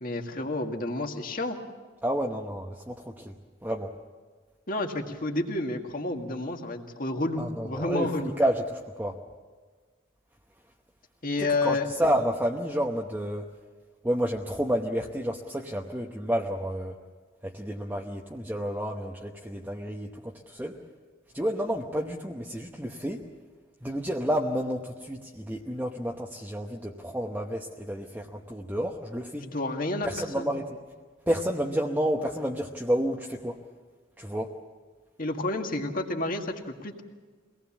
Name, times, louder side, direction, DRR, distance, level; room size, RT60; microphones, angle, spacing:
voice 1, 0.0-1.6 4.7-8.4 11.2-11.9 29.4-30.1 30.4-30.5 35.2-37.0, left 2 dB, 45° left, 3 dB, 1.9 m, -30 dB
voice 2, 2.0-3.3 3.6-3.9 7.4-9.2 11.4-13.5 14.0-16.9 17.4-20.8 21.3-23.3 23.8-29.5 30.0-30.8 31.3-33.6 34.2-34.5, equal, 10° right, 0 dB, 0.9 m, -30 dB
24.5 x 18.5 x 7.3 m, 1.5 s
head